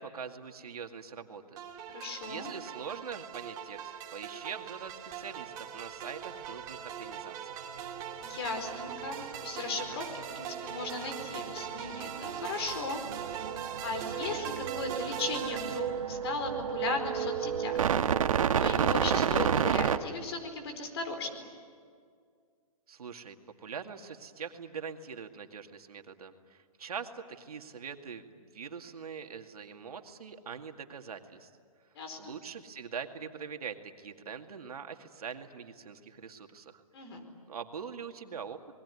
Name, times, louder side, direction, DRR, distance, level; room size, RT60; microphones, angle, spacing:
voice 1, 0.0-1.7 2.2-7.4 22.9-23.4 23.6-31.5 32.2-36.8 37.5-38.6, right 6 dB, 85° right, 5 dB, 2.3 m, -43 dB
sound 1, 1.6-15.8, right 8 dB, 20° right, 2.4 m, -41 dB
voice 2, 1.9-2.5 8.2-13.0 13.8-17.8 18.5-21.5 31.9-32.4 36.9-37.3, left 3 dB, 45° left, 6 dB, 4.6 m, -37 dB
sound 2, 5.9-6.3 6.5-20.0, right 8 dB, 65° right, 1.2 m, -32 dB
28.0 x 21.0 x 9.8 m, 2.1 s
hypercardioid pair, 165°, 19 cm